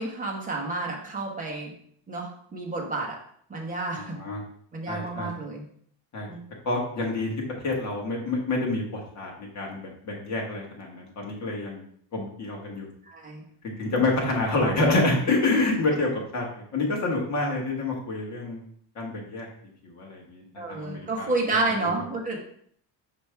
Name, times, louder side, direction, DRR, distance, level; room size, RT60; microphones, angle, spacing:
voice 1, 0.0-1.7 2.1-3.2 3.5-4.1 4.7-5.6 6.3-6.4 13.1-13.4 14.6-14.7 20.6-22.4, right 3 dB, 15° right, -1 dB, 1.1 m, -30 dB
voice 2, 3.9-4.4 4.9-5.3 6.1-6.3 6.6-7.3 7.6-11.8 12.1-12.9 13.6-16.5 16.7-18.6 18.9-19.5 19.8-21.3 21.8-21.9, left 2 dB, 35° left, -1 dB, 1.7 m, -27 dB
5.8 x 5.1 x 3.4 m, 0.62 s
cardioid pair, 170°, 48 cm